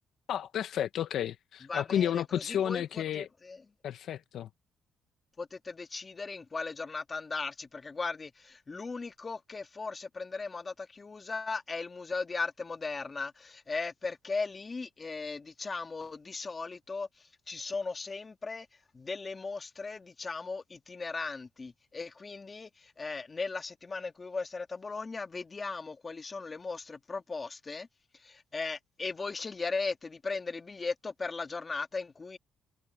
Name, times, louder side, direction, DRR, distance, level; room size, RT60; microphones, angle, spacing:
voice 1, 0.3-3.2 3.8-4.5, left 10 dB, 70° left, 0.7 m, -32 dB
voice 2, 1.7-3.6 5.4-27.9 28.1-32.4, left 4 dB, 30° left, 1.6 m, -37 dB
cardioid pair, 90°, 0 cm